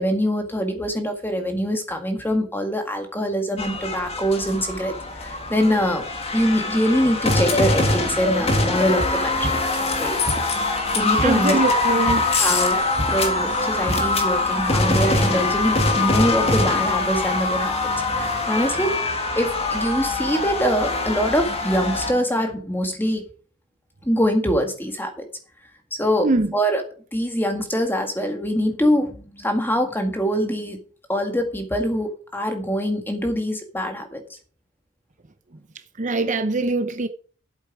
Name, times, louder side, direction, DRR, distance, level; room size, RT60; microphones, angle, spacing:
voice 1, 0.0-4.9 5.2-9.6 10.0-10.2 10.9-11.6 12.3-12.8 13.1-17.8 18.2-19.0 19.4-23.2 24.0-25.3 25.9-26.8 27.1-30.8 31.1-34.2, equal, 10° left, 1.9 m, -23 dB
sound 1, 3.6-22.1, left 2 dB, 30° left, 1.9 m, -23 dB
voice 2, 11.2-12.2 26.2-26.5 36.0-37.1, right 3 dB, 35° right, 0.7 m, -22 dB
11.5 x 8.1 x 4.8 m
head